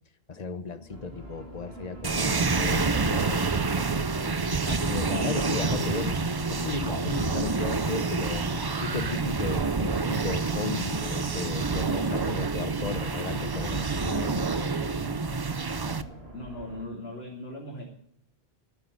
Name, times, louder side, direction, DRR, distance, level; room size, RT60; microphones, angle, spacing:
voice 1, 0.3-3.4 3.8-4.1 4.6-6.2 6.5-8.5 8.8-14.4, left 4 dB, 40° left, 11 dB, 1.0 m, -35 dB
sound 1, 0.9-16.9, right 2 dB, 80° right, 3.0 m, -43 dB
sound 2, 2.0-16.0, right 4 dB, 30° right, 0.5 m, -28 dB
voice 2, 16.3-17.8, left 1 dB, 80° left, -3 dB, 3.1 m, -38 dB
12.5 x 9.5 x 8.3 m, 0.70 s
omnidirectional pair, 1.0 m